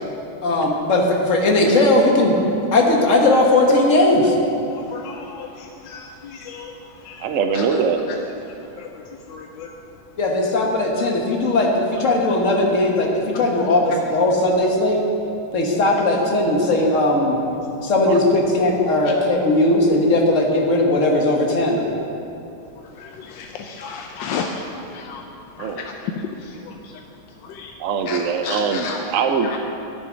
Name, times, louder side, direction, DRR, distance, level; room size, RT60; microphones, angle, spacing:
voice 1, 0.4-2.4 2.7-4.4 10.2-15.0 15.5-17.4 17.8-21.8, left 2 dB, 45° left, 0 dB, 1.6 m, -18 dB
voice 2, 4.7-6.7 7.1-7.2 7.5-7.6 8.8-8.9 9.3-9.7 23.0-24.6 24.9-25.2 25.6-25.7 26.7-26.8 27.5-27.7 28.1-28.2 28.4-29.0, left 5 dB, 85° left, 2 dB, 1.4 m, -33 dB
voice 3, 7.2-8.0 18.1-18.2 25.6-25.9 27.8-29.6, right 5 dB, 65° right, 5 dB, 0.8 m, -22 dB
11.0 x 10.0 x 5.1 m, 2.8 s
omnidirectional pair, 1.9 m